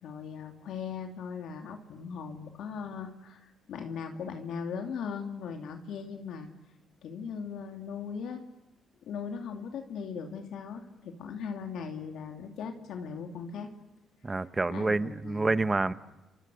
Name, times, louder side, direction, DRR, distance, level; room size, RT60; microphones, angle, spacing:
voice 1, 0.0-6.5 7.0-8.4 9.1-13.7 14.7-15.7, left 6 dB, 75° left, 4 dB, 2.7 m, -39 dB
voice 2, 14.2-15.9, right 3 dB, 20° right, 13 dB, 1.1 m, -28 dB
29.5 x 26.0 x 6.4 m, 1.0 s
cardioid pair, 90°, 0 cm